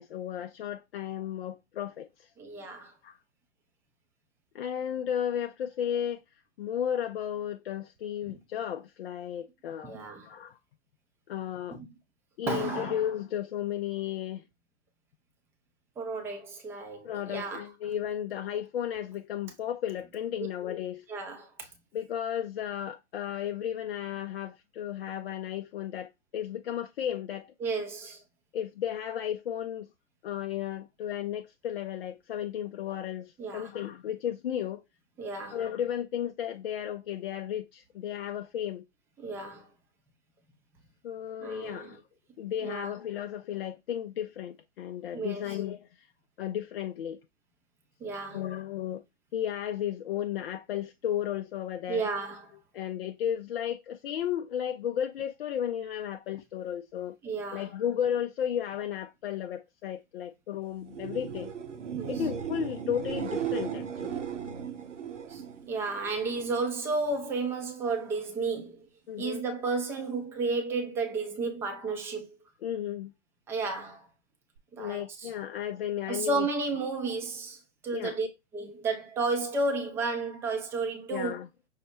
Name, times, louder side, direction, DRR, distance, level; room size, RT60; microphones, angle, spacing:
voice 1, 0.0-2.3 3.0-3.2 4.5-9.9 10.2-10.6 11.3-11.8 12.4-14.4 17.0-21.1 21.9-27.5 28.5-29.9 30.2-34.8 35.5-38.9 41.0-42.0 42.4-46.1 46.4-47.2 48.3-49.0 49.3-52.1 52.7-57.2 57.5-61.5 62.1-64.2 69.1-69.4 72.6-73.1 74.8-76.5 77.9-78.2 81.1-81.5, left 10 dB, 55° left, 0.4 m, -34 dB
voice 2, 2.4-2.9 9.8-10.3 11.7-11.9 12.4-13.0 16.0-17.6 20.4-20.5 21.1-21.7 27.6-28.2 33.4-33.7 35.2-35.6 39.2-39.7 41.4-42.0 42.6-43.0 45.1-45.5 48.0-48.4 51.9-52.5 57.2-57.7 61.9-62.1 65.3-65.4 65.7-68.9 69.2-72.3 73.5-74.1 74.7-75.3 76.1-78.3 78.5-81.3, right 3 dB, 5° right, 0.4 m, -32 dB
sound 1, 60.8-66.6 66.9-67.5 74.6-74.7, right 8 dB, 75° right, 1.0 m, -36 dB
5.6 x 2.1 x 4.2 m
figure-of-eight pair, 115°, 37 cm